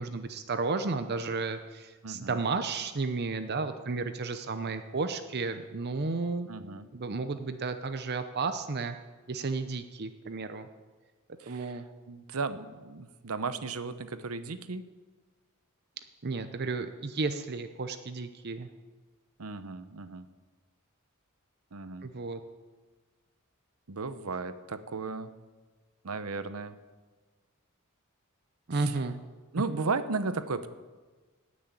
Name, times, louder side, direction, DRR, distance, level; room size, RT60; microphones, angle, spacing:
voice 1, 0.0-6.5 6.9-9.0 9.3-10.7 11.3-11.9 16.2-18.7 22.0-22.4 28.7-29.2, right 3 dB, 50° right, 9 dB, 0.7 m, -33 dB
voice 2, 2.0-2.4 6.5-6.9 11.4-11.8 12.1-14.8 19.4-20.3 21.7-22.1 23.9-25.3 26.0-26.8 28.7-29.0 29.5-30.7, right 4 dB, 90° right, 12 dB, 0.9 m, -35 dB
17.0 x 6.4 x 9.0 m, 1.3 s
head